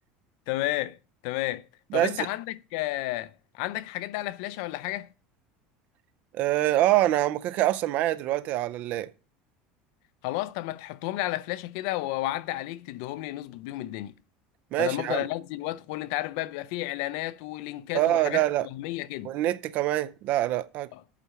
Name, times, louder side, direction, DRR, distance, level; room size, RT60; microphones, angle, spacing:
voice 1, 0.5-1.7 1.9-5.1 10.2-14.1 14.8-19.3 20.9-21.0, left 16 dB, 65° left, 0.5 m, -32 dB
voice 2, 6.3-9.1 14.7-15.2 17.9-18.7 19.2-20.9, right 14 dB, 45° right, 0.5 m, -25 dB
8.4 x 4.8 x 6.9 m
cardioid pair, 170°, 4 cm